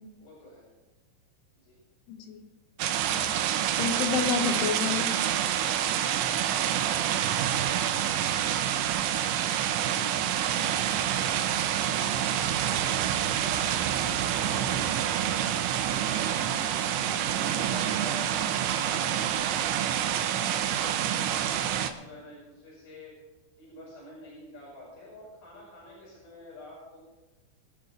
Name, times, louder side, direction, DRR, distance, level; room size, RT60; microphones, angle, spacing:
voice 1, 0.2-0.7 1.6-1.8 5.8-6.3 11.5-15.4 15.8-18.4 18.8-23.1 23.6-27.0, left 2 dB, 40° left, -8 dB, 6.6 m, -48 dB
voice 2, 2.1-2.4 3.1-3.3 3.8-5.2 10.0-11.2, left 6 dB, 85° left, 4 dB, 3.9 m, -31 dB
sound 1, 2.8-21.9, right 10 dB, 85° right, 3.1 m, -27 dB
24.0 x 11.0 x 3.3 m, 1.1 s
omnidirectional pair, 5.3 m